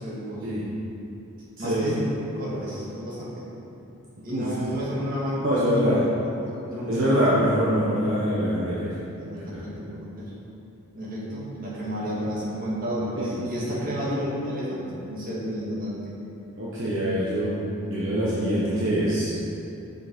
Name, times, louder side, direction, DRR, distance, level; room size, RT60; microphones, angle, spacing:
voice 1, 0.0-0.5 1.6-2.1 2.3-3.4 4.2-6.0 6.5-7.3 9.1-10.3 10.9-16.2, equal, 40° right, -7 dB, 1.7 m, -31 dB
voice 2, 1.6-1.9 4.3-4.5 5.4-6.0 6.8-8.9 9.3-9.6 13.2-13.7 16.6-19.3, equal, 60° right, -9 dB, 1.1 m, -24 dB
6.9 x 5.6 x 4.5 m, 2.9 s
head